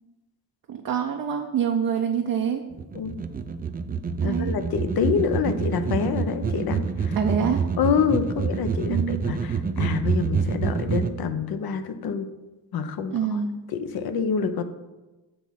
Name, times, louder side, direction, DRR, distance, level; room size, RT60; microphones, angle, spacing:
voice 1, 0.7-2.7 4.2-4.5 7.2-7.7 8.9-9.3 13.1-13.6, right 7 dB, 45° right, 2 dB, 0.8 m, -26 dB
sound 1, 2.7-11.1, right 5 dB, 20° right, 0.4 m, -27 dB
voice 2, 4.2-7.2 7.8-12.3 12.7-13.4 13.7-14.6, left 6 dB, 50° left, 10 dB, 0.8 m, -27 dB
7.8 x 3.0 x 5.8 m, 1.1 s
supercardioid pair, 60°, 46 cm